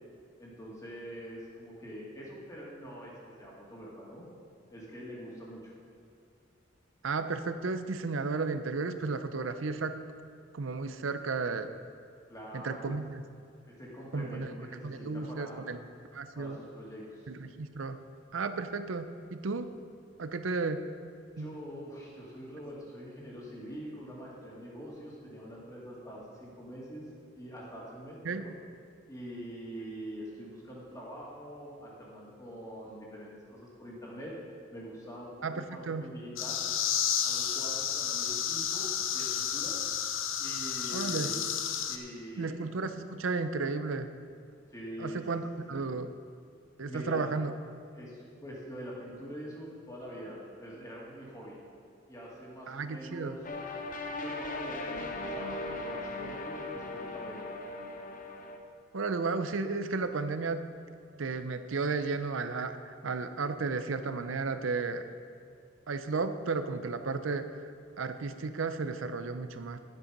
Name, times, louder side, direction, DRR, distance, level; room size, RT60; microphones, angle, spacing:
voice 1, 0.4-3.1 3.4-4.2 4.7-5.7 12.3-12.9 13.7-15.6 16.3-17.3 21.4-27.0 27.3-28.6 29.1-34.3 34.7-36.7 37.2-38.9 39.1-39.8 40.4-41.4 41.9-42.6 44.7-45.8 46.8-47.3 47.9-51.6 52.1-53.4 54.1-57.5, equal, 15° left, -5 dB, 2.3 m, -44 dB
voice 2, 7.0-9.9 10.5-11.7 12.5-13.2 14.1-15.8 16.1-16.6 17.3-18.0 18.3-19.7 20.2-20.8 21.4-21.5 28.2-28.4 35.4-36.0 40.9-41.4 42.4-44.1 45.0-46.1 46.8-47.5 52.7-53.4 58.9-60.6 61.2-65.0 65.9-67.7 68.0-69.8, right 4 dB, 85° right, 10 dB, 0.6 m, -33 dB
sound 1, 36.4-42.0, left 9 dB, 85° left, 0.7 m, -31 dB
sound 2, 53.4-58.6, left 2 dB, 45° left, 0.9 m, -38 dB
11.5 x 8.1 x 5.2 m, 2.4 s
head